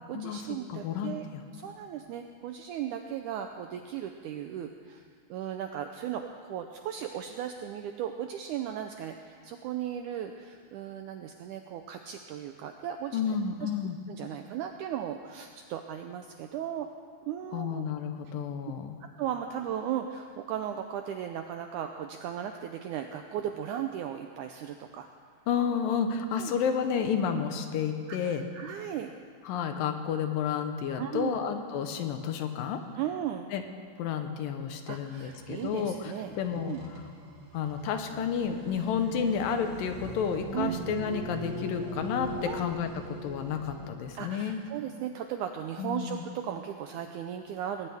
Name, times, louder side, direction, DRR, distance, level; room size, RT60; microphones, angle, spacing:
voice 1, 0.0-1.2 1.5-5.0 5.3-13.2 13.6-13.7 14.1-16.9 17.3-17.8 19.2-25.1 26.4-26.5 28.1-29.1 31.0-31.3 33.0-33.5 34.9-36.8 40.5-40.8 42.4-42.7 44.1-47.9, right 10 dB, 90° right, 5 dB, 1.8 m, -36 dB
voice 2, 0.7-1.4 13.1-14.0 17.5-19.0 25.5-28.4 29.4-32.8 33.5-33.6 34.0-37.0 37.5-44.6 45.8-46.2, left 7 dB, 80° left, 6 dB, 2.5 m, -31 dB
sound 1, 35.2-43.9, equal, 55° right, 2.4 m, -41 dB
19.5 x 18.5 x 3.5 m, 2.1 s
omnidirectional pair, 4.2 m